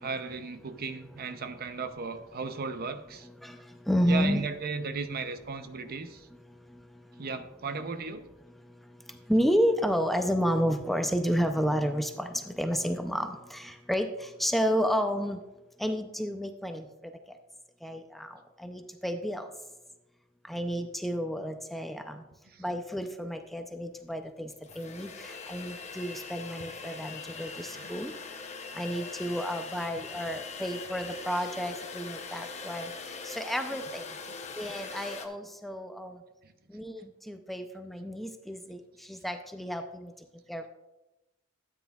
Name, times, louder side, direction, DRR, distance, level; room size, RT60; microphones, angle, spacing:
voice 1, 0.0-3.3 4.1-6.3 7.2-8.2 22.5-22.6 27.7-28.0 36.4-36.5, right 4 dB, 50° right, 10 dB, 0.6 m, -36 dB
voice 2, 3.9-4.4 9.3-15.4 15.8-16.9 17.8-18.3 18.6-19.5 20.5-22.2 22.6-24.5 24.8-28.1 28.7-32.9 33.2-34.0 34.6-36.1 36.7-38.8 39.1-40.1 40.5-40.7, equal, ahead, 6 dB, 0.5 m, -31 dB
sound 1, 24.0-24.1 24.5-35.3, left 4 dB, 35° left, 0.8 m, -42 dB
12.5 x 9.2 x 2.3 m, 1.0 s
head